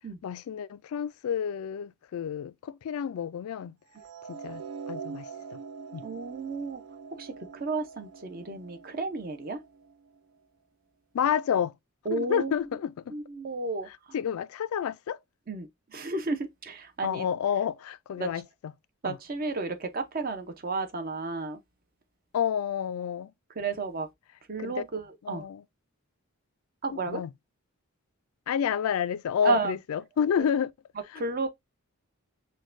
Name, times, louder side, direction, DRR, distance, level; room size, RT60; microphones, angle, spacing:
voice 1, 0.2-3.7 4.3-4.6 4.9-5.3 5.5-5.6 5.9-6.0 11.1-11.7 12.1-13.2 13.9-15.2 17.0-18.7 19.0-19.2 22.3-23.3 24.6-24.8 25.2-25.6 26.9-27.3 28.5-30.7 31.1-31.2, left 8 dB, 75° left, 0.3 m, -30 dB
sound 1, 4.0-10.2, right 5 dB, 85° right, 0.4 m, -44 dB
voice 2, 6.0-6.8 7.2-9.6 12.1-12.5 13.1-13.9 15.5-17.3 18.2-18.3 19.0-21.6 23.6-24.1 24.5-25.4 26.8-27.2 29.4-29.7 31.2-31.5, right 3 dB, 40° right, 0.6 m, -32 dB
6.2 x 2.2 x 2.5 m
head